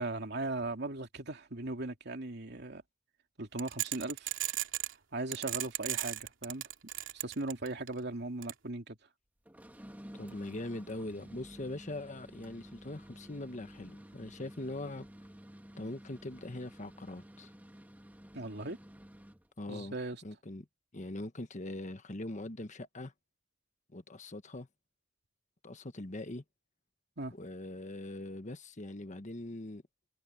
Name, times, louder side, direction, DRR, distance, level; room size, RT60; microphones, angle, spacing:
voice 1, 0.0-2.8 3.4-4.4 5.1-6.6 7.1-9.0 18.3-18.8 19.7-20.2 27.2-27.3, right 2 dB, 60° right, 2.8 m, -38 dB
sound 1, 3.6-4.9 5.3-7.9 8.4-8.5, right 13 dB, 85° right, 3.0 m, -35 dB
sound 2, 9.4-19.5, equal, 10° right, 1.8 m, -52 dB
voice 2, 10.1-15.1 15.8-17.5 19.6-20.0 20.2-20.7 20.9-23.1 23.9-24.7 25.6-26.4 27.3-29.8, left 1 dB, 40° left, 1.3 m, -42 dB
head